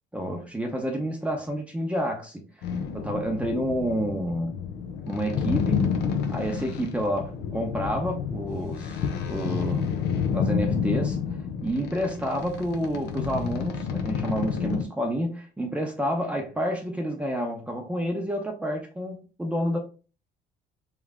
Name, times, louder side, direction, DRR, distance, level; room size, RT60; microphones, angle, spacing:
voice 1, 0.1-2.6 2.9-4.7 5.0-6.0 6.3-9.9 10.3-11.2 11.6-19.8, equal, 5° right, 0.7 m, -29 dB
sound 1, 2.6-14.8, left 6 dB, 80° left, 0.6 m, -29 dB
3.4 x 3.1 x 3.6 m
cardioid pair, 110°, 17 cm